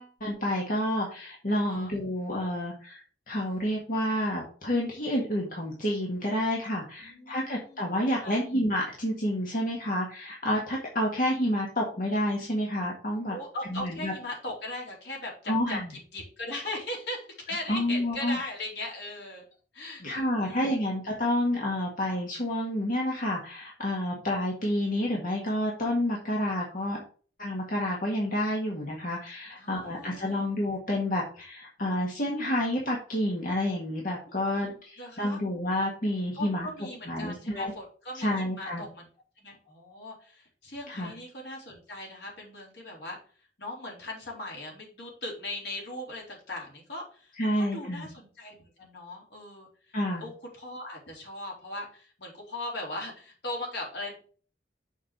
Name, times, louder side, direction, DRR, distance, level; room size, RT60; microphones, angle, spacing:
voice 1, 0.0-3.0 3.3-13.4 13.7-14.1 15.5-15.9 17.7-18.4 20.0-27.0 27.4-36.7 37.1-37.7 38.1-38.8 40.9-41.1 47.4-48.1 49.9-50.3, left 1 dB, 50° left, -2 dB, 1.7 m, -29 dB
voice 2, 7.0-7.9 8.2-8.4 13.3-19.4 19.7-20.8 29.5-30.5 34.3-35.4 36.4-39.1 39.4-43.2 43.6-49.9 50.2-54.2, left 1 dB, 75° left, -3 dB, 4.1 m, -39 dB
6.8 x 5.0 x 5.0 m, 0.41 s
head